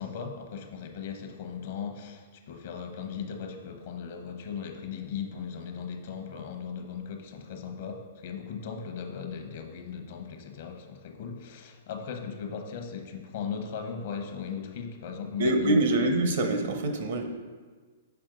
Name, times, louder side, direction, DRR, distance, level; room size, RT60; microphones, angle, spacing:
voice 1, 0.0-15.8, left 6 dB, 60° left, 5 dB, 0.9 m, -37 dB
voice 2, 15.4-17.2, right 2 dB, 65° right, 5 dB, 0.9 m, -25 dB
6.8 x 4.3 x 3.8 m, 1.5 s
hypercardioid pair, 135°, 0 cm